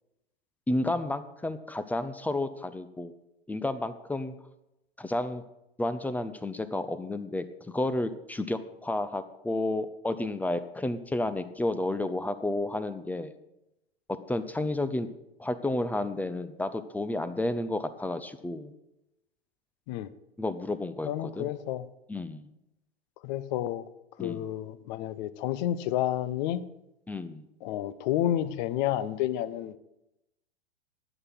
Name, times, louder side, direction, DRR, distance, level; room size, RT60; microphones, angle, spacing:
voice 1, 0.7-3.1 3.5-4.3 5.0-5.4 5.8-13.3 14.1-15.1 15.4-18.7 20.4-21.5 22.1-22.5 24.2-24.4 27.1-27.4, left 2 dB, 5° left, 12 dB, 0.6 m, -31 dB
voice 2, 21.0-21.9 23.2-23.8 24.2-26.6 27.6-29.8, left 12 dB, 45° left, 15 dB, 0.9 m, -30 dB
11.0 x 8.3 x 6.0 m, 0.88 s
figure-of-eight pair, 100°, 31 cm